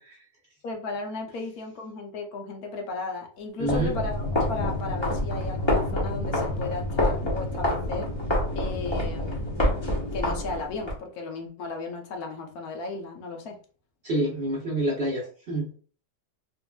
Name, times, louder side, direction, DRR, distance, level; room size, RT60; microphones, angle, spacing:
voice 1, 0.6-8.1 8.5-9.4 10.1-13.6, left 3 dB, 65° left, 3 dB, 1.1 m, -35 dB
mp hemorrhagic fever, 3.6-11.0, left 1 dB, 20° left, 0.8 m, -27 dB
voice 2, 3.6-4.0 14.0-15.7, right 1 dB, 45° right, -4 dB, 0.8 m, -27 dB
4.2 x 2.5 x 2.2 m, 0.42 s
omnidirectional pair, 1.9 m